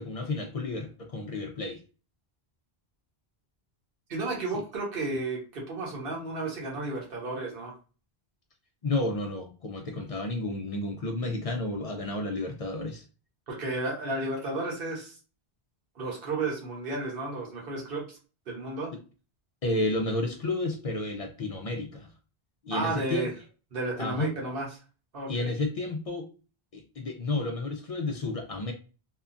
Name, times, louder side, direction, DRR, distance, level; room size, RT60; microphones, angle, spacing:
voice 1, 0.0-1.8 8.8-13.0 19.6-22.1 22.6-23.3 24.0-24.3 25.3-26.3 26.7-28.7, left 2 dB, 55° left, 3 dB, 0.4 m, -31 dB
voice 2, 4.1-7.7 13.5-15.2 16.0-18.2 18.5-18.9 22.7-23.3 23.7-24.7 25.1-25.5, right 2 dB, 60° right, -2 dB, 1.2 m, -32 dB
2.8 x 2.3 x 2.4 m, 0.34 s
omnidirectional pair, 1.1 m